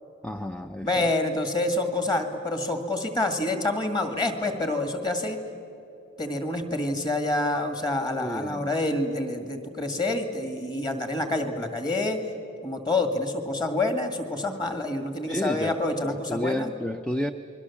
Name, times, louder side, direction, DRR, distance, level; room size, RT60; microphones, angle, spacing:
voice 1, 0.2-1.1 8.2-8.7 15.2-17.3, equal, 5° left, 8 dB, 0.5 m, -31 dB
voice 2, 0.8-5.4 6.2-12.2 12.6-16.7, left 2 dB, 20° left, 6 dB, 2.0 m, -27 dB
28.0 x 22.0 x 7.2 m, 2.8 s
head